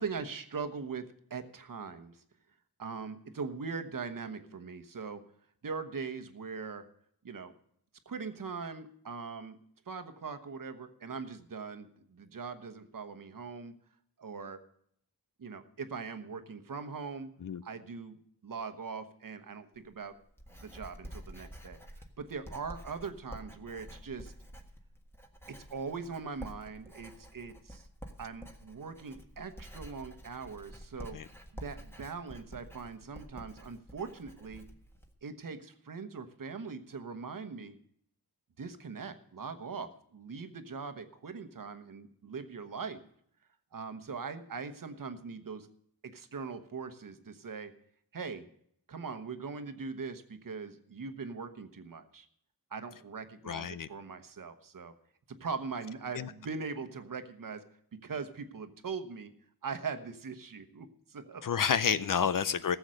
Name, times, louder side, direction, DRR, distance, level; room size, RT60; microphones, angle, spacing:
voice 1, 0.0-2.2 2.8-5.2 5.6-6.8 7.2-7.5 8.1-9.6 9.9-13.7 14.2-14.6 15.4-17.3 17.6-18.2 18.4-20.1 20.6-21.8 22.2-24.3 25.5-27.9 28.2-31.2 31.5-34.6 35.2-37.7 38.6-43.0 43.7-45.7 46.0-47.7 48.1-48.4 48.9-52.3 52.7-54.9 55.4-57.6 57.9-59.3 59.6-61.4, right 5 dB, 55° right, 1.1 m, -41 dB
Writing, 19.7-35.1, equal, 5° left, 1.5 m, -49 dB
voice 2, 53.5-53.9 56.1-56.3 61.4-62.8, left 7 dB, 55° left, 0.6 m, -29 dB
14.5 x 7.1 x 6.3 m
wide cardioid pair, 70°, 38 cm